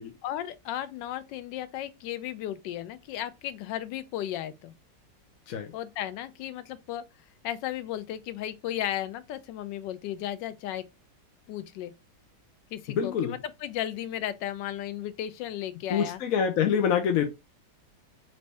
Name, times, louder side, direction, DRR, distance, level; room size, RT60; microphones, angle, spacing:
voice 1, 0.2-4.7 5.7-7.0 7.4-10.8 11.5-11.9 12.7-16.2, left 12 dB, 85° left, 1.2 m, -35 dB
voice 2, 12.9-13.4 15.9-17.3, left 7 dB, 65° left, 0.9 m, -26 dB
4.2 x 2.7 x 3.3 m
omnidirectional pair, 1.9 m